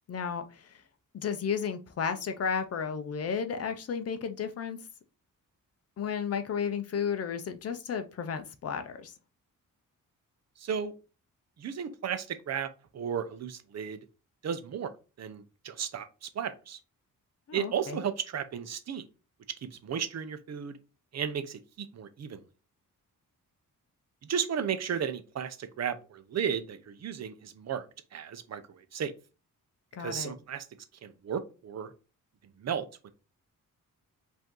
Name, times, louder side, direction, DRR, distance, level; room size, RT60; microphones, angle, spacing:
voice 1, 0.1-0.8 1.1-4.8 6.0-9.1 17.5-18.0 29.9-30.3, left 6 dB, 45° left, 0.6 m, -33 dB
voice 2, 10.6-10.9 11.6-14.0 14.4-14.9 15.2-16.8 17.5-19.0 19.6-20.8 21.1-22.4 24.2-29.1 30.0-30.7 31.0-31.9 32.6-33.1, right 7 dB, 50° right, 0.6 m, -34 dB
5.2 x 2.7 x 3.7 m
wide cardioid pair, 175°, 34 cm